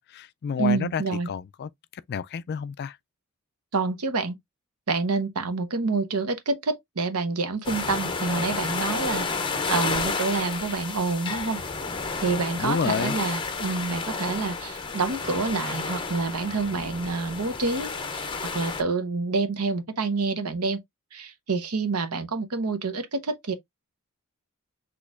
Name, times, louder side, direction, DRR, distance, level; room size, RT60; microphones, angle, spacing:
voice 1, 0.0-1.7 2.1-3.0 12.6-13.2, left 6 dB, 45° left, 0.3 m, -29 dB
voice 2, 0.6-1.3 3.7-4.4 4.9-9.3 9.7-11.6 12.2-20.8 21.1-23.5, right 4 dB, 85° right, 0.9 m, -27 dB
sound 1, 7.6-18.8, left 4 dB, 20° left, 0.7 m, -31 dB
6.1 x 3.1 x 2.4 m
head